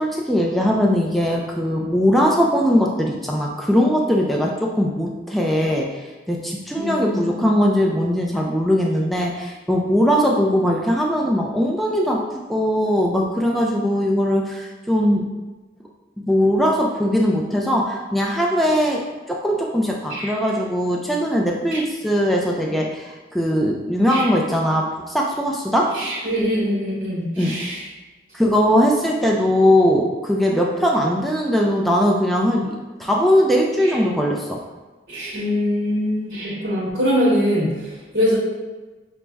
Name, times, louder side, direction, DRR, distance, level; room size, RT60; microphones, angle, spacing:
voice 1, 0.0-6.0 6.3-12.2 12.5-15.3 16.3-25.9 27.4-27.5 28.3-32.7 33.0-34.6, equal, ahead, -1 dB, 0.3 m, -20 dB
voice 2, 6.8-7.6 20.1-20.3 21.7-21.8 24.1-24.3 25.9-27.8 33.8-34.0 35.1-38.4, equal, 50° right, -10 dB, 1.0 m, -23 dB
5.8 x 2.0 x 3.3 m, 1.2 s
head